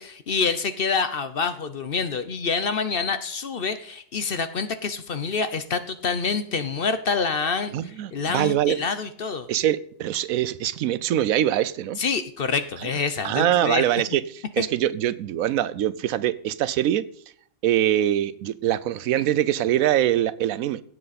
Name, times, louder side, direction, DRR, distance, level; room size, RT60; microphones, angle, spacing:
voice 1, 0.0-9.5 12.0-13.8 14.6-14.7, left 5 dB, 50° left, 0.8 m, -27 dB
voice 2, 7.7-8.8 9.5-12.0 13.2-17.0 17.6-20.8, right 12 dB, 85° right, 1.1 m, -23 dB
16.5 x 7.8 x 4.1 m
omnidirectional pair, 1.4 m